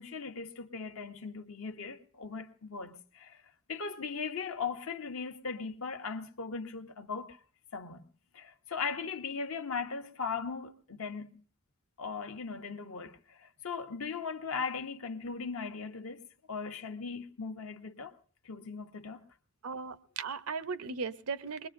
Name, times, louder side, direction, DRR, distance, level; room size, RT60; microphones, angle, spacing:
voice 1, 0.0-3.4 3.7-7.4 7.7-8.0 8.3-11.4 12.0-16.2 16.5-18.2 18.4-19.2, left 5 dB, 70° left, 0.9 m, -38 dB
voice 2, 19.6-21.7, right 5 dB, 90° right, 0.7 m, -37 dB
24.5 x 21.0 x 2.6 m
head